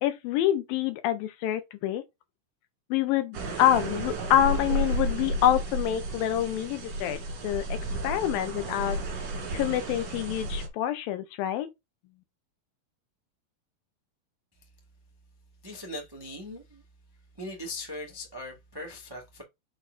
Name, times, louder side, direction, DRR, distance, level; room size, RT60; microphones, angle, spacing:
voice 1, 0.0-2.0 2.9-7.2 7.4-7.8 8.0-9.0 9.5-11.7, left 12 dB, 80° left, 2.5 m, -26 dB
sound 1, 3.3-10.7, right 1 dB, 50° right, 2.8 m, -32 dB
voice 2, 15.6-16.8 17.4-19.4, left 1 dB, 30° right, 0.4 m, -39 dB
6.3 x 6.1 x 2.5 m
omnidirectional pair, 4.1 m